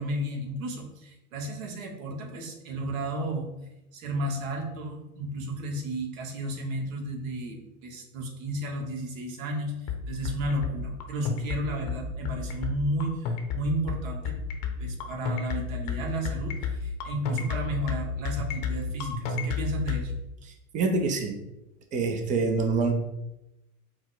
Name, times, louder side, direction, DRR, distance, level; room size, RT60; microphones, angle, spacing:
voice 1, 0.0-3.5 3.9-14.3 14.8-20.1, right 1 dB, 65° right, 2 dB, 1.2 m, -33 dB
sound 1, 9.9-20.0, left 7 dB, 45° left, 0.8 m, -31 dB
voice 2, 20.7-21.4 21.9-22.9, right 4 dB, 20° right, 4 dB, 0.4 m, -25 dB
4.6 x 2.1 x 3.9 m, 0.90 s
hypercardioid pair, 110°, 43 cm